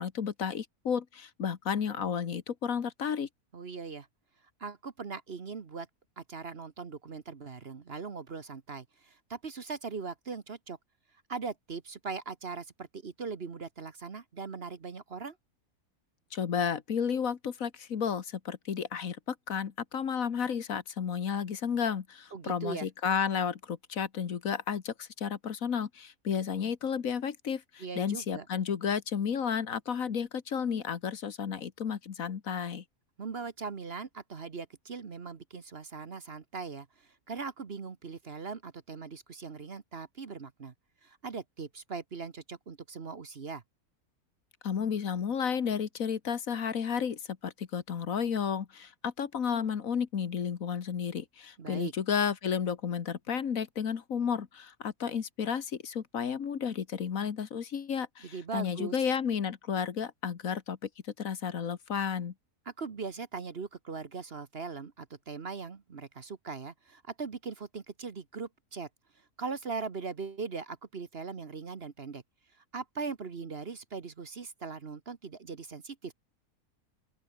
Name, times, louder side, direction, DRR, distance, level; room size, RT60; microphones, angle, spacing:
voice 1, 0.0-3.3 16.3-32.8 44.6-60.8 61.2-62.3, left 7 dB, 60° left, 1.7 m, -32 dB
voice 2, 3.5-4.1 4.6-5.9 6.2-10.8 11.3-15.4 22.3-22.9 27.8-28.5 33.2-40.7 41.0-43.6 51.6-51.9 58.2-59.0 62.6-68.9 69.4-72.2 72.7-76.1, right 5 dB, 45° right, 1.4 m, -40 dB
open air
omnidirectional pair, 1.6 m